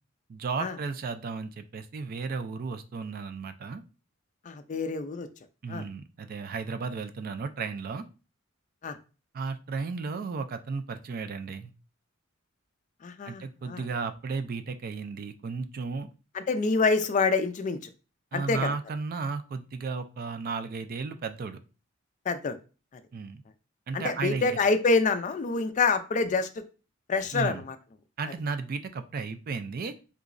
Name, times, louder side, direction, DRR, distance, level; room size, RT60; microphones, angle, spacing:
voice 1, 0.3-3.8 5.6-8.0 9.3-11.7 13.3-16.1 18.3-21.6 23.1-23.4 23.9-24.6 27.3-27.6 28.2-29.9, right 4 dB, 45° right, 10 dB, 0.3 m, -34 dB
voice 2, 4.5-5.3 5.7-5.9 8.8-9.0 13.0-13.9 16.3-17.9 18.3-18.7 22.3-22.6 23.9-26.5 27.1-27.8, left 4 dB, 40° left, 10 dB, 0.3 m, -26 dB
3.6 x 3.0 x 2.5 m, 0.33 s
head